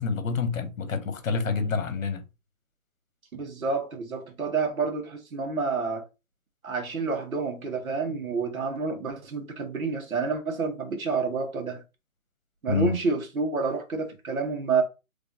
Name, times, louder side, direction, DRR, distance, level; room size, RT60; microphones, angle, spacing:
voice 1, 0.0-2.2 12.7-12.9, left 5 dB, 65° left, 1.0 m, -27 dB
voice 2, 3.3-6.0 6.6-11.8 12.6-14.8, right 4 dB, 70° right, 1.7 m, -29 dB
3.7 x 3.3 x 2.7 m
hypercardioid pair, 175°, 43 cm